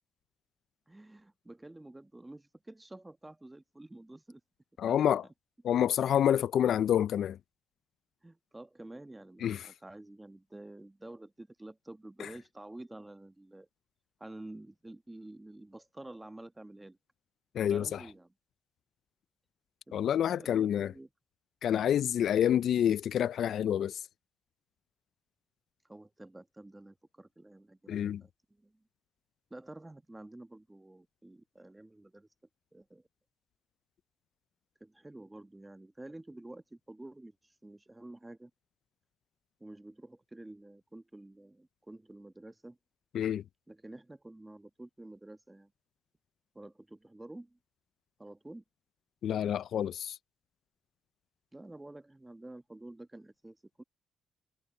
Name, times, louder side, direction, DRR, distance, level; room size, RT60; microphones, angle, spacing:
voice 1, 0.9-4.4 4.8-5.2 8.2-13.7 14.2-17.0 17.7-18.3 19.9-21.1 21.7-22.6 25.9-28.3 28.6-28.9 29.5-32.3 32.7-33.0 34.8-38.5 39.6-42.8 43.7-45.7 46.5-47.6 48.2-48.6 51.5-53.8, right 1 dB, 10° right, 1.2 m, -50 dB
voice 2, 4.8-5.3 5.6-7.4 9.4-9.7 12.2-12.3 17.5-18.0 19.9-20.9 21.6-24.1 27.9-28.2 43.1-43.4 49.2-50.2, left 10 dB, 65° left, 0.3 m, -28 dB
cardioid pair, 90°, 0 cm